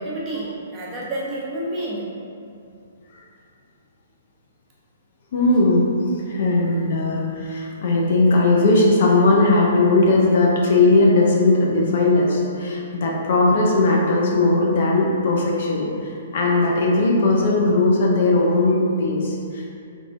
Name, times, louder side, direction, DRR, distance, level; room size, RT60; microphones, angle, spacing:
voice 1, 0.0-2.1, right 1 dB, 20° right, -6 dB, 0.8 m, -29 dB
voice 2, 5.3-5.8 6.3-19.7, left 2 dB, 60° left, -2 dB, 0.6 m, -18 dB
3.5 x 3.3 x 2.5 m, 2.5 s
hypercardioid pair, 130°, 0 cm